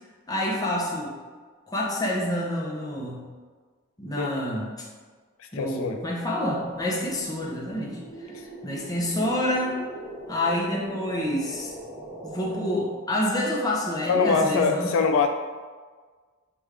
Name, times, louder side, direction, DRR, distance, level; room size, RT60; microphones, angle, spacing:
voice 1, 0.3-1.1 1.7-3.2 4.0-4.7 5.5-9.8 10.3-11.7 12.2-14.9, left 1 dB, 20° left, -3 dB, 0.7 m, -28 dB
voice 2, 5.5-6.0 14.1-15.3, left 5 dB, 75° left, 4 dB, 0.3 m, -23 dB
sound 1, 6.6-12.7, right 1 dB, 15° right, 1.1 m, -41 dB
5.9 x 2.4 x 3.3 m, 1.5 s
head